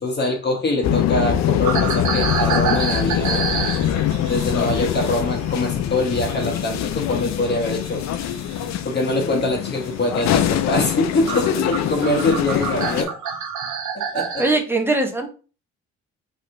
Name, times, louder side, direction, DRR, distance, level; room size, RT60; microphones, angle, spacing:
voice 1, 0.0-3.5 4.3-8.0 8.8-13.1 13.9-14.4, left 2 dB, 35° left, 1 dB, 1.0 m, -24 dB
sound 1, 0.8-13.0, left 10 dB, 65° left, 0.5 m, -23 dB
sound 2, 1.6-6.4 6.7-8.8 9.4-9.7 10.2-10.4 10.9-11.0 11.3-14.5, right 6 dB, 75° right, 0.8 m, -28 dB
voice 2, 14.4-15.3, right 2 dB, 10° right, 4 dB, 0.7 m, -20 dB
3.3 x 2.8 x 2.6 m, 0.36 s
cardioid pair, 90°, 30 cm